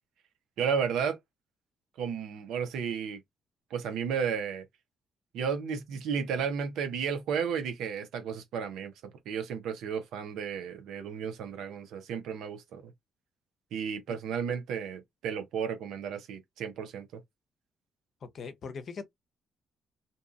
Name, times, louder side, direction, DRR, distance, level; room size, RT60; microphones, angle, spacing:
voice 1, 0.6-1.2 2.0-3.2 3.7-4.6 5.3-8.9 9.3-12.9 13.7-17.2, right 7 dB, 75° right, 0.6 m, -33 dB
voice 2, 18.2-19.1, left 5 dB, 55° left, 0.6 m, -40 dB
2.6 x 2.4 x 2.4 m
hypercardioid pair, 50°, 0 cm